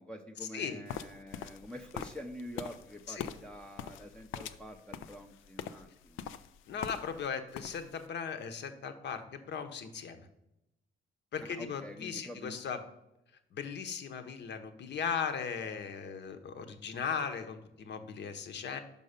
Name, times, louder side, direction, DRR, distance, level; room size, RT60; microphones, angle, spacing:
voice 1, 0.0-6.2 11.4-12.6, equal, 5° left, 1 dB, 0.5 m, -47 dB
sound 1, 0.9-7.3 7.5-8.0, left 9 dB, 90° left, 0.4 m, -43 dB
voice 2, 6.7-10.3 11.3-12.8 13.5-18.8, left 6 dB, 60° left, 7 dB, 0.9 m, -38 dB
5.5 x 5.3 x 5.1 m, 0.87 s
cardioid pair, 90°, 20 cm